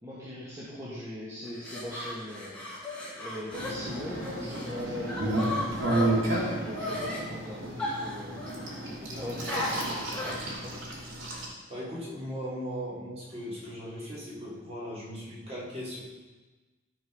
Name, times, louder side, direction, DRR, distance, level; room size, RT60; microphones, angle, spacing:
voice 1, 0.0-2.6 3.1-10.8, left 1 dB, 15° right, -10 dB, 2.3 m, -40 dB
sound 1, 1.5-4.7 5.1-7.2 7.8-8.8 9.5-10.5, left 1 dB, 5° left, 2.2 m, -36 dB
sound 2, 3.5-11.4, right 1 dB, 90° right, 2.9 m, -32 dB
voice 2, 11.7-16.0, equal, 35° right, -7 dB, 3.9 m, -38 dB
14.0 x 5.4 x 5.8 m, 1.3 s
head